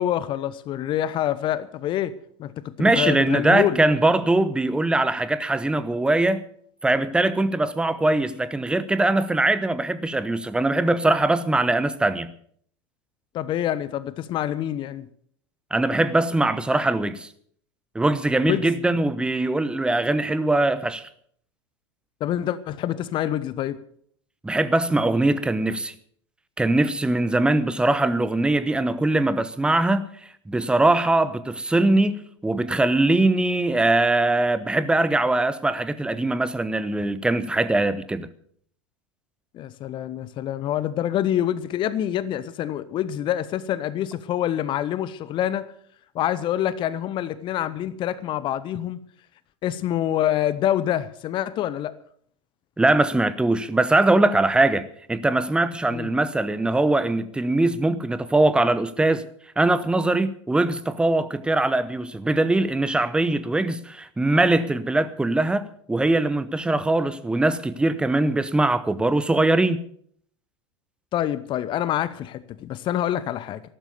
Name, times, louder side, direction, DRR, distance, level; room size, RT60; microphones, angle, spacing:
voice 1, 0.0-2.1 2.4-3.8 13.3-15.1 18.5-18.7 22.2-23.8 39.5-45.7 46.1-49.0 49.6-51.9 55.9-56.1 71.1-73.6, left 11 dB, 30° left, 0.8 m, -26 dB
voice 2, 2.8-6.4 6.8-12.3 15.7-17.3 17.9-21.1 24.4-25.9 26.6-30.1 30.5-38.3 52.8-59.2 59.6-69.8, right 2 dB, 5° right, 0.9 m, -21 dB
13.5 x 12.0 x 6.9 m
figure-of-eight pair, 85°, 15 cm